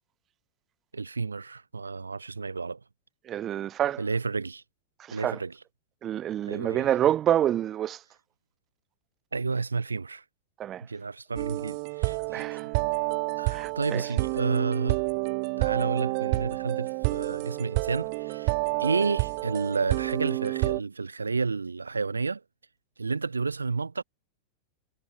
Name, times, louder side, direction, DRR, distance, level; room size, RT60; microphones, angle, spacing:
voice 1, 0.9-2.8 4.0-4.6 5.1-5.5 6.5-6.9 9.3-10.2 10.8-12.6 13.4-15.0 15.6-18.5 18.8-22.4 23.0-24.0, right 4 dB, 75° right, 2.1 m, -31 dB
voice 2, 3.2-4.0 5.0-5.4 6.0-8.0 10.6-10.8 12.3-12.7 13.5-14.0, right 11 dB, 30° right, 3.2 m, -27 dB
sound 1, 11.4-20.8, right 33 dB, 45° right, 4.3 m, -29 dB
figure-of-eight pair, 90°, 0 cm